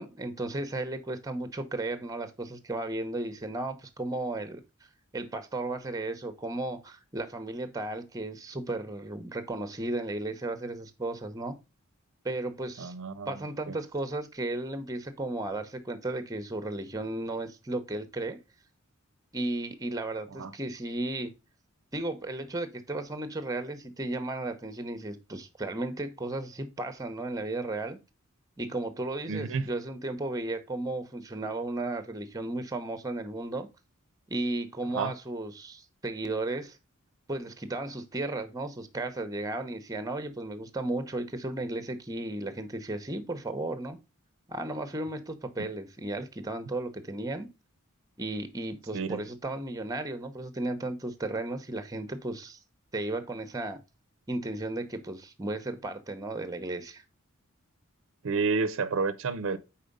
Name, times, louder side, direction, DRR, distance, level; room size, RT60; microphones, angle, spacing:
voice 1, 0.0-4.6 5.1-11.6 12.2-12.9 13.3-18.4 19.3-21.3 21.9-28.0 28.6-33.7 34.3-36.8 37.3-44.0 44.5-47.5 48.2-52.6 52.9-53.8 54.3-57.0, right 2 dB, 15° right, 0.8 m, -34 dB
voice 2, 12.8-13.3 13.7-13.8 20.3-20.5 29.3-29.7 34.9-35.1 45.6-45.7 48.9-49.3 58.2-59.6, right 4 dB, 65° right, 0.5 m, -30 dB
4.9 x 4.4 x 5.2 m
head